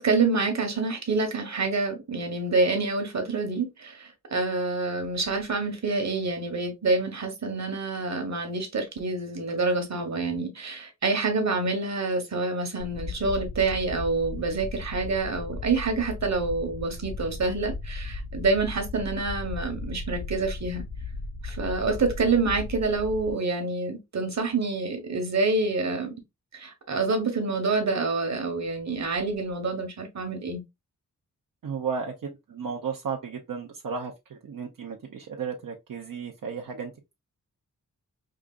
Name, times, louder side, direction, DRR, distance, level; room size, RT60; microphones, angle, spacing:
voice 1, 0.0-20.8 21.4-26.1 26.5-30.6, right 3 dB, 55° right, 1.2 m, -27 dB
sound 1, 12.8-23.3, left 3 dB, 70° left, 0.8 m, -36 dB
voice 2, 31.6-36.9, right 6 dB, 80° right, 0.7 m, -34 dB
4.9 x 2.5 x 2.3 m
wide cardioid pair, 95°, 33 cm